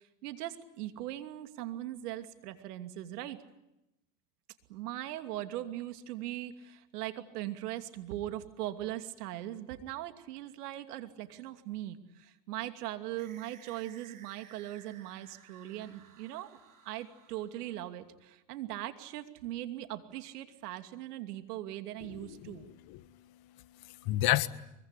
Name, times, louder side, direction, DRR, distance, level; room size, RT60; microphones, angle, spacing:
voice 1, 0.0-3.4 4.7-16.6 16.8-22.7, right 14 dB, 85° right, 8 dB, 2.8 m, -40 dB
sound 1, 13.2-18.1, right 9 dB, 45° right, 5.9 m, -58 dB
voice 2, 22.2-22.5 23.0-24.5, left 15 dB, 55° left, 12 dB, 1.8 m, -32 dB
24.0 x 23.0 x 9.9 m, 0.90 s
supercardioid pair, 105°, 45 cm